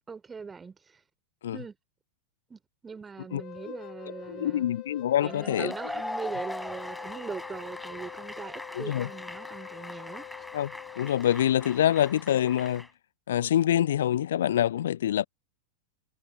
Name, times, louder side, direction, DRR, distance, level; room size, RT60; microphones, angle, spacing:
voice 1, 0.1-0.8 1.5-1.8 2.5-4.6 5.2-10.2, right 5 dB, 15° right, 4.0 m, -40 dB
Wind instrument woodwind instrument, 3.3-11.1, left 18 dB, 40° left, 5.4 m, -45 dB
voice 2, 4.3-5.7 8.7-9.1 10.5-10.7 11.0-12.8 13.3-15.3, left 11 dB, 60° left, 0.3 m, -25 dB
Cheering / Applause / Crowd, 5.2-12.9, left 1 dB, 5° left, 5.4 m, -40 dB
figure-of-eight pair, 90°, 0 cm